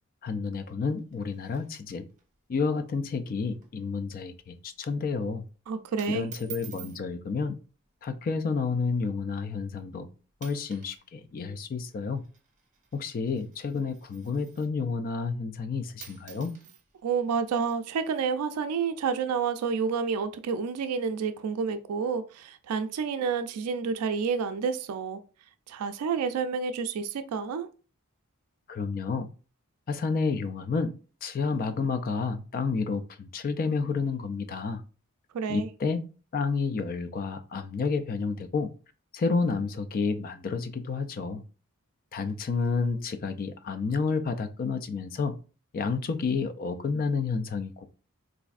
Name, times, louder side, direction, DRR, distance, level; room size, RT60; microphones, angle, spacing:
voice 1, 0.2-2.1 2.5-5.4 6.1-7.6 8.0-10.1 10.4-12.2 12.9-16.5 28.7-29.3 29.9-30.9 31.2-34.8 35.5-36.0 36.3-38.7 39.1-41.4 42.1-45.4 45.7-47.9, left 4 dB, 40° left, 0.3 m, -30 dB
sound 1, 1.0-2.2 2.5-2.6 2.9-3.2 3.5-3.8 4.2-4.5 5.2-5.5 6.0-7.0 8.0-8.3 9.0-9.1 9.8-10.0 10.3-11.0 11.3-14.8 15.7-15.8 16.0-18.3, right 11 dB, 35° right, 0.8 m, -49 dB
voice 2, 5.7-6.3 17.0-25.2 25.7-27.7 35.3-35.7, right 6 dB, 80° right, 0.3 m, -29 dB
4.0 x 2.5 x 2.3 m
head